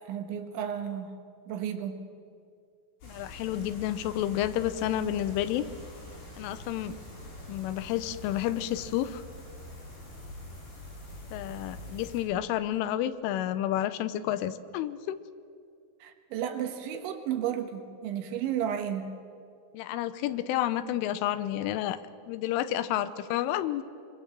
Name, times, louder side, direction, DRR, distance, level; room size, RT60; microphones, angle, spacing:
voice 1, 0.1-1.1 1.5-2.0 16.0-19.1, right 9 dB, 75° right, 5 dB, 3.8 m, -33 dB
voice 2, 3.0-5.7 6.4-7.0 7.5-9.2 11.3-15.2 19.7-22.0 22.3-23.8, left 12 dB, 85° left, 13 dB, 3.4 m, -30 dB
sound 1, 3.0-12.2, left 1 dB, 60° left, 8.0 m, -45 dB
24.0 x 23.5 x 7.4 m, 2.3 s
omnidirectional pair, 5.5 m